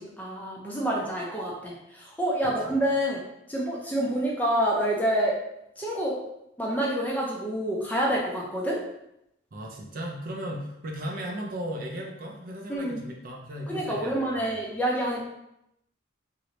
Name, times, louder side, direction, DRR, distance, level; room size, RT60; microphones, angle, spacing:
voice 1, 0.0-3.2 3.5-5.3 5.8-6.2 6.6-8.8 12.7-13.0 13.7-15.2, right 1 dB, 10° left, -4 dB, 0.5 m, -27 dB
voice 2, 2.4-2.7 9.5-14.5, equal, 45° right, 0 dB, 0.5 m, -36 dB
3.1 x 2.6 x 2.9 m, 0.83 s
head